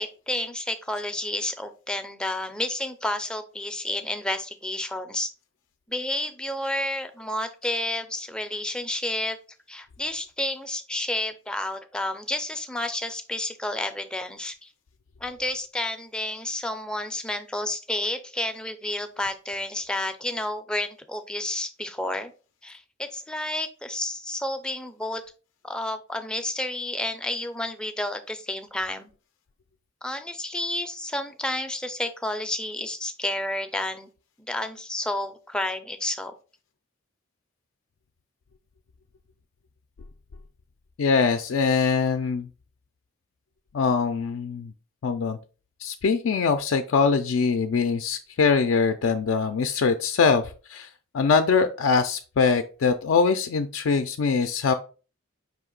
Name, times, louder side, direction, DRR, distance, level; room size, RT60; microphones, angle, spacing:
voice 1, 0.0-5.3 5.9-9.4 9.7-14.7 15.2-22.3 22.6-25.2 25.6-29.1 30.0-34.1 34.5-36.3, left 1 dB, 5° left, 7 dB, 0.4 m, -30 dB
voice 2, 41.0-42.5 43.7-44.7 45.0-45.4 45.8-50.9 51.1-54.7, left 5 dB, 70° left, 6 dB, 0.4 m, -23 dB
4.8 x 2.8 x 3.7 m, 0.35 s
head